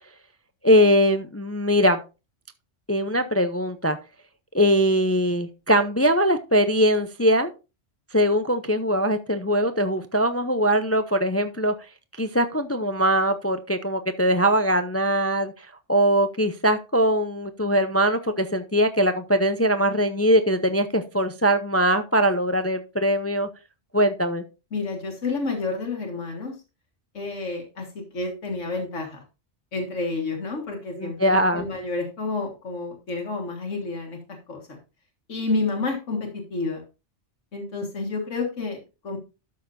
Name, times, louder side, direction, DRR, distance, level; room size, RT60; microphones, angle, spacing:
voice 1, 0.6-2.0 2.9-4.0 4.5-7.5 8.1-11.7 12.2-23.5 23.9-24.4 31.0-31.6, equal, 20° left, 9 dB, 0.4 m, -21 dB
voice 2, 24.7-26.6 27.1-29.2 29.7-34.8 35.3-36.8 37.5-39.2, left 3 dB, 85° left, 2 dB, 2.0 m, -30 dB
12.5 x 6.5 x 2.6 m, 0.30 s
omnidirectional pair, 1.2 m